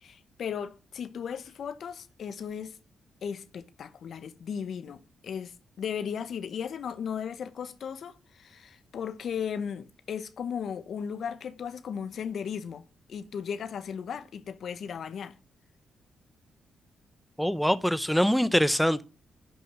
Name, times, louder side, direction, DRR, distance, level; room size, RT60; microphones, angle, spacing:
voice 1, 0.0-2.8 3.2-12.8 13.1-15.3, left 7 dB, 70° left, 1.1 m, -36 dB
voice 2, 17.4-19.0, equal, ahead, 0.8 m, -24 dB
11.5 x 5.5 x 6.1 m
cardioid pair, 70°, 0 cm